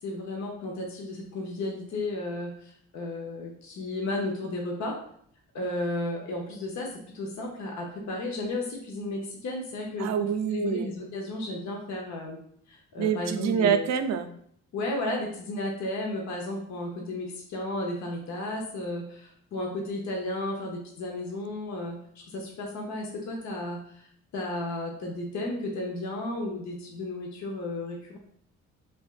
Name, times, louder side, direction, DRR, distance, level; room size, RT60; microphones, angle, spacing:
voice 1, 0.0-5.0 5.5-12.4 12.7-13.9 14.7-28.2, left 2 dB, 65° left, -1 dB, 0.8 m, -33 dB
voice 2, 10.0-10.9 13.0-14.3, right 8 dB, 60° right, 7 dB, 0.5 m, -26 dB
5.1 x 2.5 x 2.4 m, 0.65 s
cardioid pair, 90°, 30 cm